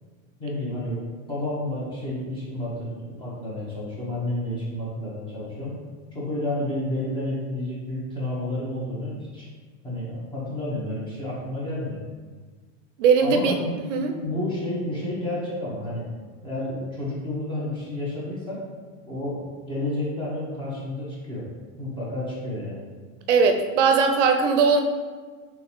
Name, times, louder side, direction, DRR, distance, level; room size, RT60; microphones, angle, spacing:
voice 1, 0.4-1.0 1.3-5.7 6.1-9.5 9.8-12.0 13.2-13.8 14.2-16.0 16.4-18.6 19.1-21.4 21.8-22.8, left 1 dB, 15° left, -7 dB, 1.0 m, -30 dB
voice 2, 13.0-13.6 13.9-14.1 23.3-24.8, right 5 dB, 65° right, 5 dB, 0.5 m, -19 dB
3.9 x 3.3 x 3.0 m, 1.5 s
supercardioid pair, 150°, 38 cm